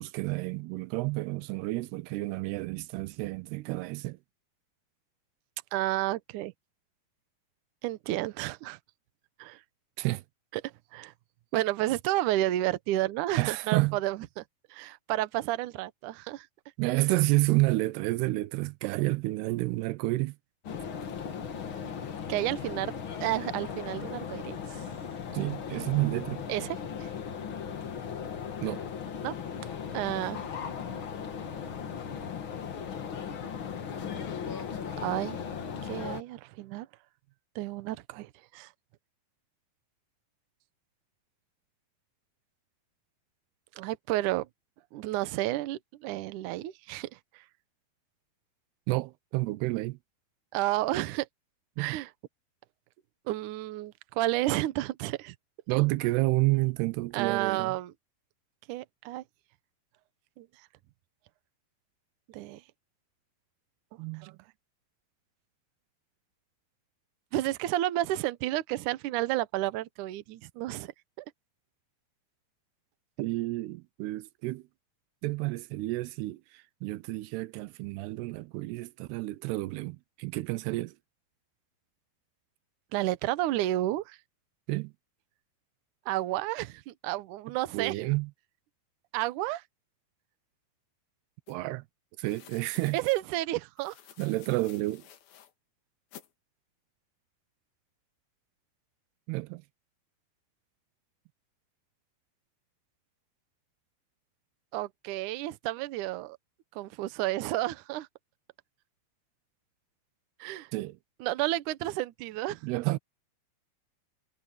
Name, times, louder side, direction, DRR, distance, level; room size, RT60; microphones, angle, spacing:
voice 1, 0.0-4.2 10.0-10.2 13.4-14.0 16.8-20.4 25.3-26.4 28.6-28.8 48.9-50.0 51.8-52.0 55.7-57.8 64.0-64.4 73.2-74.6 75.2-76.4 76.8-80.9 84.7-84.9 87.7-88.3 91.5-91.8 92.2-93.0 94.2-95.0 99.3-99.6 110.7-111.0 112.6-113.0, right 21 dB, 90° right, 2.8 m, -30 dB
voice 2, 5.7-6.5 7.8-8.8 9.4-9.6 10.5-11.1 11.5-14.4 14.7-16.5 22.3-24.6 26.5-27.1 29.2-29.4 29.9-30.4 35.0-35.4 35.8-36.9 37.6-38.7 43.8-44.5 44.9-47.4 50.5-51.3 51.8-52.1 53.3-55.4 57.1-57.9 58.7-59.2 60.4-60.5 62.3-62.6 67.3-70.9 71.2-71.3 82.9-84.2 86.1-87.9 89.1-89.6 92.9-94.0 104.7-106.4 106.8-108.1 110.4-110.7 111.2-112.6, right 15 dB, 70° right, 2.0 m, -31 dB
sound 1, 20.6-36.2, left 7 dB, 50° left, 1.5 m, -37 dB
sound 2, 91.5-91.6 92.2-93.2 93.8-95.5 96.1-96.3, left 10 dB, 70° left, 3.5 m, -53 dB
omnidirectional pair, 4.6 m